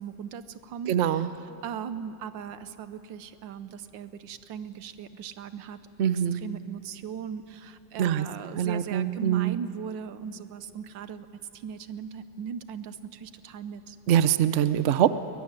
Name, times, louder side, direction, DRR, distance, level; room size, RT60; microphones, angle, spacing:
voice 1, 0.0-5.8 6.1-11.3 11.5-14.0, right 7 dB, 85° right, 12 dB, 1.6 m, -38 dB
voice 2, 0.9-1.3 6.0-6.4 8.0-8.2 8.6-9.6 14.1-15.1, right 10 dB, 55° right, 13 dB, 0.8 m, -23 dB
21.5 x 21.0 x 9.7 m, 2.8 s
omnidirectional pair, 2.0 m